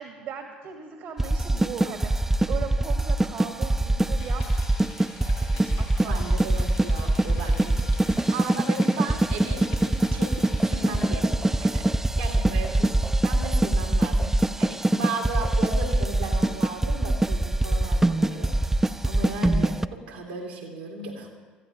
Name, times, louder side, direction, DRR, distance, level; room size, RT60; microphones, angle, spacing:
voice 1, 0.0-4.5 5.5-6.2 6.8-7.6 12.3-12.5, right 7 dB, 60° right, 4 dB, 1.5 m, -38 dB
sound 1, 1.2-19.9, right 1 dB, 10° right, 0.4 m, -23 dB
sound 2, 4.2-11.1, left 6 dB, 75° left, 3.0 m, -48 dB
voice 2, 6.0-7.9 8.3-11.9 12.2-12.9 13.2-21.3, right 2 dB, 85° right, 1 dB, 2.2 m, -35 dB
18.0 x 14.5 x 3.0 m, 1.4 s
figure-of-eight pair, 60°, 4 cm